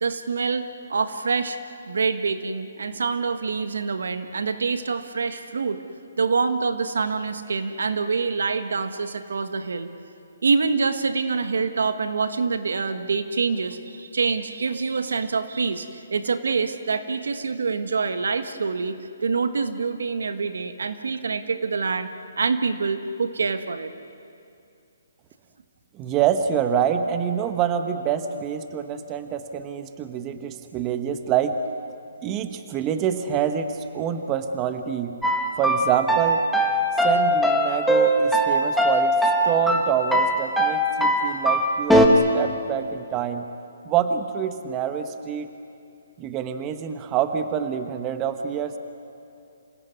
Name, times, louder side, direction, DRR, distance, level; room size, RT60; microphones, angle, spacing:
voice 1, 0.0-1.6 1.8-5.8 6.2-9.9 10.4-19.0 19.2-22.1 22.4-23.9, right 4 dB, 80° right, 9 dB, 1.5 m, -26 dB
voice 2, 26.0-31.6 32.2-35.2 35.6-36.4 37.0-39.2 39.4-43.5 43.8-45.5 46.2-48.8, right 8 dB, 20° right, 8 dB, 1.2 m, -26 dB
sound 1, 35.2-42.1, right 1 dB, ahead, 1.6 m, -21 dB
27.5 x 17.5 x 9.5 m, 2.6 s
hypercardioid pair, 150°, 0 cm